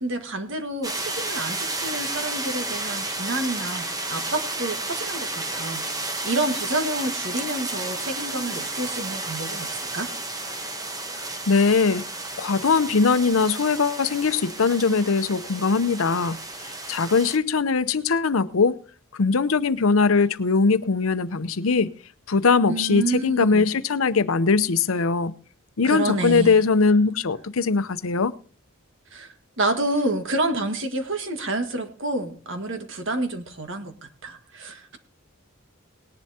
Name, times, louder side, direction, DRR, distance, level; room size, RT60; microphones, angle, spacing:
voice 1, 0.0-5.9 6.2-10.1 22.7-23.7 25.8-26.6 29.1-35.0, right 2 dB, 65° right, 1.7 m, -29 dB
sound 1, 0.8-17.4, right 2 dB, 20° right, 1.1 m, -32 dB
voice 2, 11.5-12.0 12.4-16.4 16.9-18.8 19.1-21.9 22.3-25.3 25.8-28.3, left 4 dB, 85° left, 0.7 m, -21 dB
19.5 x 11.0 x 2.8 m
head